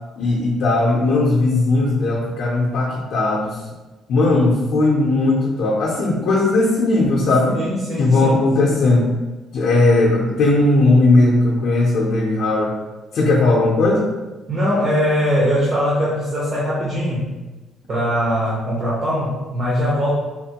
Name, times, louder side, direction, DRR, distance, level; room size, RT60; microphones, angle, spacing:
voice 1, 0.1-3.6 4.1-7.6 8.0-9.1 9.5-12.7 13.1-14.1, left 2 dB, 60° left, -4 dB, 0.6 m, -17 dB
voice 2, 7.5-8.5 14.5-17.3 17.9-20.1, equal, 35° right, -8 dB, 0.7 m, -21 dB
3.5 x 2.5 x 2.8 m, 1.2 s
cardioid pair, 180°, 0 cm